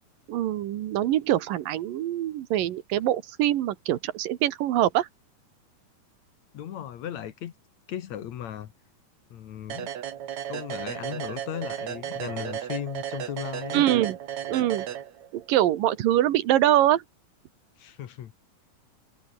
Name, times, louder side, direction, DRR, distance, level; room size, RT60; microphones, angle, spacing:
voice 1, 0.3-5.1 13.7-14.2 14.5-14.9 15.3-17.0, right 13 dB, 85° right, 3.0 m, -24 dB
voice 2, 6.5-7.5 7.9-8.7 9.3-9.9 10.5-13.9 17.8-18.3, left 10 dB, 60° left, 2.4 m, -36 dB
sound 1, 9.7-15.5, right 10 dB, 60° right, 2.8 m, -35 dB
omnidirectional pair, 3.8 m